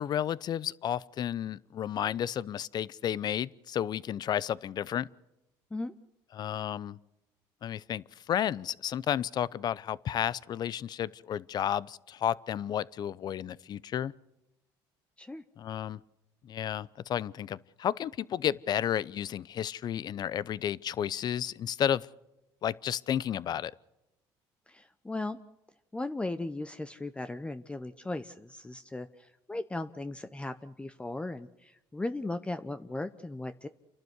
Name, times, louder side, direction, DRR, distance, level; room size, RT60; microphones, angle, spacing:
voice 1, 0.0-5.1 6.3-7.0 7.6-14.1 15.6-16.0 16.4-22.1 22.6-23.7, left 10 dB, 50° left, 0.7 m, -32 dB
voice 2, 24.7-25.4 25.9-33.7, left 2 dB, 10° left, 0.8 m, -37 dB
29.0 x 12.0 x 8.1 m
cardioid pair, 105°, 9 cm